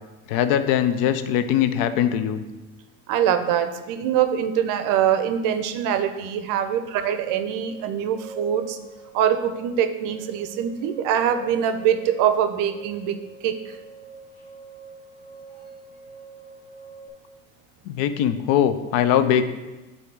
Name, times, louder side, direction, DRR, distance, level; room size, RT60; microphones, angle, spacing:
voice 1, 0.3-2.4 17.9-19.5, left 9 dB, 60° left, 11 dB, 0.6 m, -21 dB
voice 2, 3.1-8.8 9.1-13.8, right 9 dB, 50° right, 9 dB, 0.6 m, -23 dB
sound 1, 6.8-17.1, right 3 dB, 35° left, 1.5 m, -44 dB
8.1 x 2.8 x 4.6 m, 1.1 s
hypercardioid pair, 95°, 40 cm